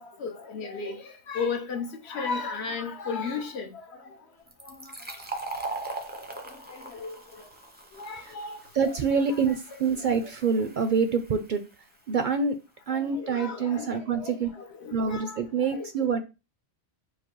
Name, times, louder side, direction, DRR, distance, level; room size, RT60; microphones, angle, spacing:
voice 1, 0.0-4.1 4.6-4.9 6.5-7.1 8.0-8.6 8.8-8.9 9.8-10.3 12.9-15.4 15.7-15.9, left 5 dB, 75° left, 1.1 m, -35 dB
Fill (with liquid), 4.5-11.8, right 2 dB, 15° right, 0.4 m, -41 dB
voice 2, 8.8-11.6 12.1-12.5 12.9-14.5 14.9-16.2, right 5 dB, 60° right, 0.6 m, -26 dB
4.7 x 2.0 x 4.6 m
omnidirectional pair, 1.1 m